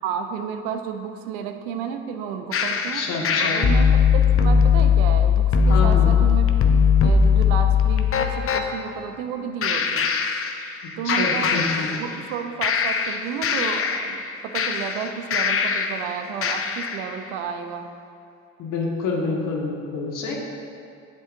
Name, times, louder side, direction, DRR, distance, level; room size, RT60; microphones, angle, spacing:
voice 1, 0.0-3.0 3.4-6.5 7.0-10.1 11.0-17.9, right 7 dB, 70° right, 6 dB, 0.7 m, -32 dB
sound 1, 2.5-8.6 9.6-10.8 11.1-12.3 12.6-16.0 16.4-17.0, left 6 dB, 35° left, 0.7 m, -20 dB
voice 2, 2.7-3.6 5.7-6.1 10.8-11.9 18.6-20.3, left 3 dB, 50° left, -2 dB, 1.8 m, -28 dB
11.0 x 7.5 x 2.6 m, 2.4 s
hypercardioid pair, 65°, 39 cm